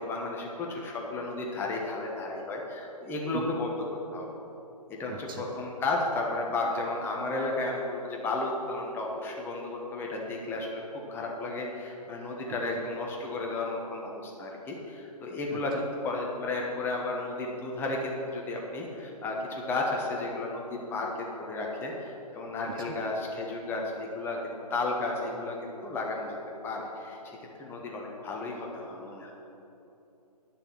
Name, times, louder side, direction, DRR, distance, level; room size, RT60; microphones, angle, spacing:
voice 1, 0.0-3.8 4.1-4.3 4.9-26.4 26.6-29.3, left 2 dB, 10° left, -1 dB, 1.1 m, -33 dB
voice 2, 5.1-5.5 12.5-12.8 15.5-15.8 22.8-23.0, right 8 dB, 30° right, 4 dB, 0.7 m, -40 dB
10.5 x 6.7 x 7.5 m, 3.0 s
hypercardioid pair, 145°, 21 cm